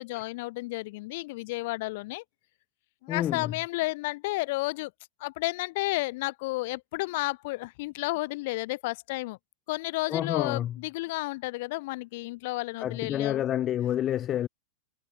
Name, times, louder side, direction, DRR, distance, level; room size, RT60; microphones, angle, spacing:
voice 1, 0.0-2.2 3.0-4.9 5.2-9.4 9.7-13.4, left 22 dB, 50° left, 3.6 m, -32 dB
voice 2, 3.1-3.5 10.1-10.8 12.8-14.5, left 11 dB, 30° left, 1.4 m, -29 dB
figure-of-eight pair, 90°, 0 cm